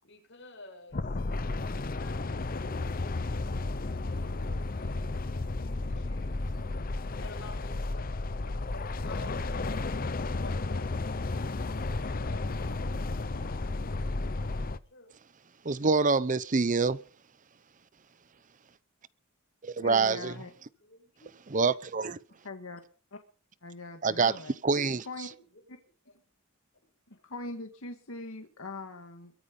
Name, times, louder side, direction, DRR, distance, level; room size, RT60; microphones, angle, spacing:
voice 1, 0.0-1.1 1.4-2.2 2.5-6.5 7.2-9.8 10.2-12.8 13.6-13.8 14.1-15.2 20.0-20.4 20.7-21.3 25.2-25.4 26.1-26.2 27.1-27.2, left 2 dB, 60° left, 7.3 m, -52 dB
sound 1, 0.9-14.8, left 2 dB, 45° left, 0.8 m, -33 dB
voice 2, 15.6-17.0 19.6-20.3 21.5-22.2 24.0-24.3 24.6-25.1, right 4 dB, 40° right, 0.7 m, -26 dB
voice 3, 19.8-20.5 22.4-22.8 23.1-23.2 23.6-24.6 25.1-25.3 25.7-25.8 27.1-29.3, left 2 dB, 80° left, 1.8 m, -41 dB
23.0 x 9.6 x 5.3 m
head